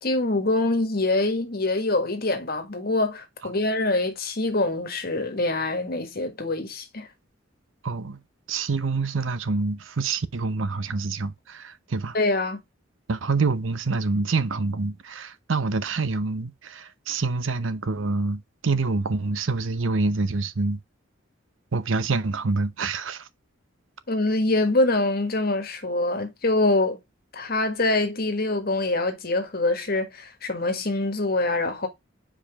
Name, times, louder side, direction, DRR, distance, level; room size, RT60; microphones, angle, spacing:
voice 1, 0.0-7.1 12.1-12.6 24.1-27.0 27.3-31.9, left 2 dB, 50° left, 1.6 m, -24 dB
voice 2, 7.8-8.2 8.5-12.2 13.1-20.8 21.7-23.3, right 3 dB, 75° right, 0.7 m, -26 dB
6.8 x 5.0 x 3.5 m
head